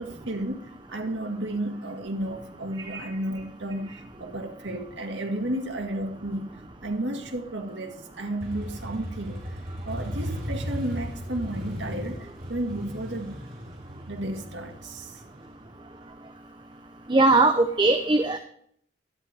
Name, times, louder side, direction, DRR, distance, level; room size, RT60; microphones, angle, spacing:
voice 1, 0.0-6.5 6.8-9.4 9.9-13.4 14.1-15.2, right 1 dB, 80° right, 1.9 m, -33 dB
Motorcycle, 8.4-16.0, equal, 50° right, 4.3 m, -36 dB
voice 2, 17.1-18.4, right 2 dB, 25° right, 0.7 m, -19 dB
12.5 x 12.0 x 3.5 m
head